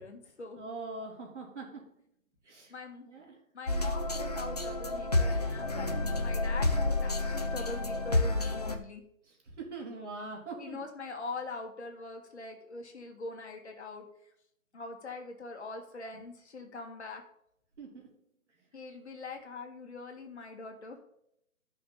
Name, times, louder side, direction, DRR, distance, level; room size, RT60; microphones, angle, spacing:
voice 1, 0.0-0.6 2.7-3.1 3.5-9.0 10.6-14.1 14.7-17.2 18.7-21.0, left 3 dB, 50° left, 3 dB, 1.8 m, -43 dB
voice 2, 0.5-1.9 2.4-2.7 3.0-3.4 9.3-10.8 17.8-18.1, right 3 dB, 55° right, -1 dB, 3.7 m, -42 dB
sound 1, 3.7-8.7, left 2 dB, 30° left, 0.6 m, -30 dB
13.0 x 5.8 x 4.2 m, 0.75 s
hypercardioid pair, 170°, 42 cm